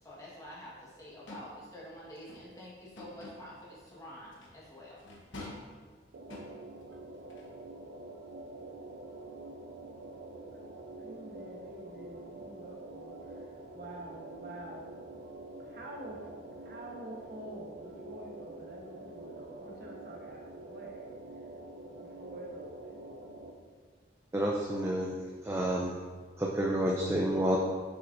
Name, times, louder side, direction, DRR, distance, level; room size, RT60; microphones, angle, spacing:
voice 1, 0.0-5.0, equal, 20° left, -6 dB, 1.3 m, -48 dB
sound 1, 1.3-1.6 2.2-3.5 4.3-4.6 5.0-5.8 6.3-6.9 7.3-7.5, left 1 dB, 90° left, 1.1 m, -47 dB
sound 2, 6.1-23.5, right 2 dB, 75° right, 0.5 m, -47 dB
voice 2, 11.0-14.9 15.6-21.1 22.0-23.0, right 1 dB, 55° right, -3 dB, 1.1 m, -47 dB
voice 3, 24.3-26.0 26.4-27.6, right 1 dB, 15° right, -2 dB, 0.4 m, -30 dB
6.2 x 5.8 x 2.6 m, 1.5 s
head